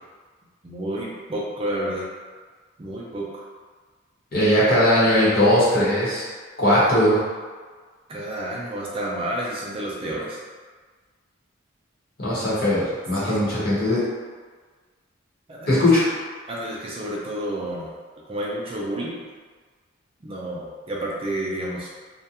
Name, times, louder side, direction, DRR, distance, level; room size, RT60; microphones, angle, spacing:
voice 1, 0.6-2.0 2.8-3.4 6.7-6.9 8.1-10.4 13.2-13.4 15.5-15.8 16.5-17.9 18.3-19.2 20.2-21.9, right 1 dB, 30° right, -4 dB, 0.4 m, -30 dB
voice 2, 4.3-6.3 6.6-7.2 12.2-14.0 15.7-16.1, left 1 dB, 50° left, -9 dB, 0.9 m, -19 dB
2.4 x 2.1 x 2.8 m, 1.5 s
head